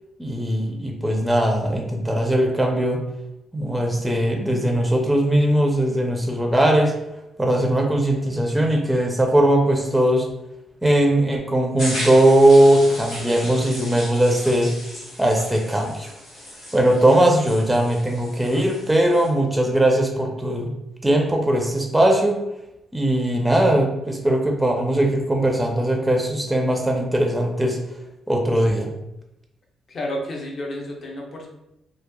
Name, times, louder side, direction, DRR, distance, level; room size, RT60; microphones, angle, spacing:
voice 1, 0.2-3.0 3.5-6.9 7.4-10.3 10.8-14.7 15.2-16.1 16.7-20.7 21.0-22.4 22.9-27.8 28.3-28.9, right 1 dB, 10° right, 1 dB, 0.4 m, -19 dB
sound 1, 11.8-19.3, left 1 dB, 65° left, 1.2 m, -36 dB
voice 2, 29.9-31.5, left 1 dB, 45° left, 0 dB, 0.6 m, -31 dB
2.8 x 2.0 x 2.2 m, 0.88 s
cardioid pair, 90°, 0 cm